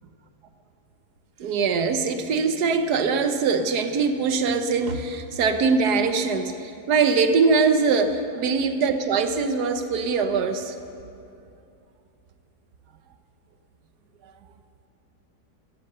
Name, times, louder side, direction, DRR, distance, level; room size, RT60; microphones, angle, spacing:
voice 1, 1.4-10.7, right 5 dB, 80° right, 8 dB, 1.4 m, -22 dB
15.0 x 14.0 x 6.7 m, 2.6 s
omnidirectional pair, 1.7 m